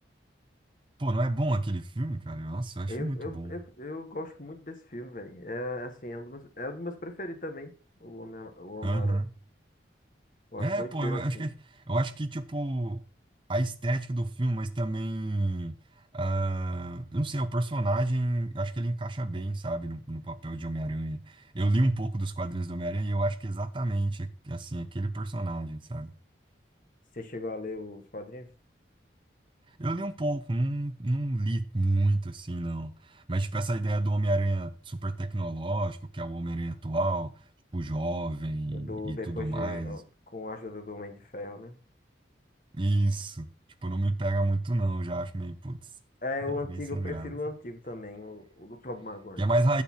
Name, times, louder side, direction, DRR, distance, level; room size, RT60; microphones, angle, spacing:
voice 1, 1.0-3.5 8.8-9.3 10.6-13.0 13.5-15.8 16.1-26.1 29.8-37.3 37.7-40.0 42.7-43.5 43.8-45.8 46.7-47.4 49.4-49.8, right 2 dB, 25° right, 0.6 m, -29 dB
voice 2, 2.9-7.7 8.0-9.2 10.5-11.5 27.1-28.5 38.7-40.0 40.3-41.8 46.2-49.4, left 2 dB, 45° left, 1.3 m, -38 dB
8.4 x 6.6 x 4.4 m
head